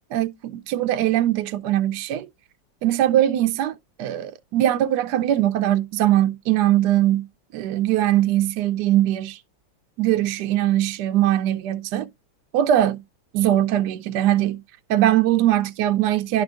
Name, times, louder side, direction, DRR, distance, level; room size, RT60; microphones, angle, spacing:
voice 1, 0.1-2.3 2.8-7.3 7.5-9.4 10.0-12.1 12.5-13.0 13.3-14.6 14.9-16.4, right 12 dB, 70° right, 1.1 m, -21 dB
12.0 x 4.4 x 2.4 m
omnidirectional pair, 2.1 m